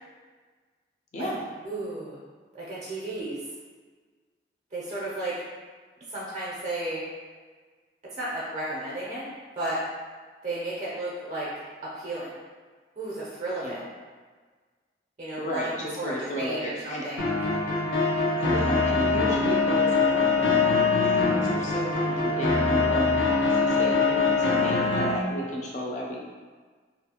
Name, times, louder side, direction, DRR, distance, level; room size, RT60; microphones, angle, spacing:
voice 1, 1.1-1.4 13.6-13.8 15.4-17.1 18.4-26.2, equal, 40° left, -2 dB, 0.4 m, -34 dB
voice 2, 1.6-2.2 2.5-3.4 4.7-5.3 6.1-7.0 8.2-9.2 9.5-9.8 10.4-11.5 11.8-12.3 13.0-13.8 15.2-17.2, right 2 dB, 40° right, -8 dB, 0.5 m, -33 dB
sound 1, 17.2-25.2, left 3 dB, 80° left, 0.6 m, -23 dB
2.5 x 2.3 x 2.8 m, 1.5 s
head